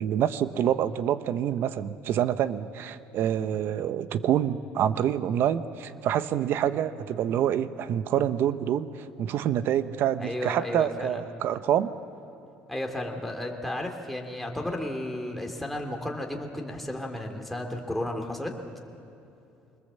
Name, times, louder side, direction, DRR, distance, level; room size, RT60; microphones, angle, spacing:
voice 1, 0.0-11.9, right 10 dB, 60° right, 13 dB, 0.9 m, -27 dB
voice 2, 10.2-11.2 12.7-18.5, left 1 dB, 5° left, 2 dB, 2.6 m, -33 dB
24.5 x 20.5 x 7.5 m, 2.8 s
cardioid pair, 110°, 4 cm